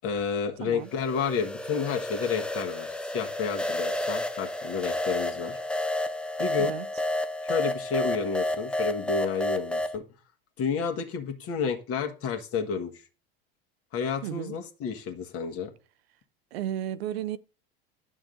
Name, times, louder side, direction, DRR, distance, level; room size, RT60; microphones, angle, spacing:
voice 1, 0.0-5.6 6.4-6.7 7.4-10.0 10.6-12.9 13.9-15.7, left 6 dB, 50° left, 1.4 m, -30 dB
sound 1, 0.9-10.0, left 1 dB, 5° left, 0.5 m, -31 dB
voice 2, 14.2-14.6 16.5-17.4, right 11 dB, 80° right, 0.5 m, -33 dB
9.4 x 6.3 x 2.5 m
hypercardioid pair, 80°, 31 cm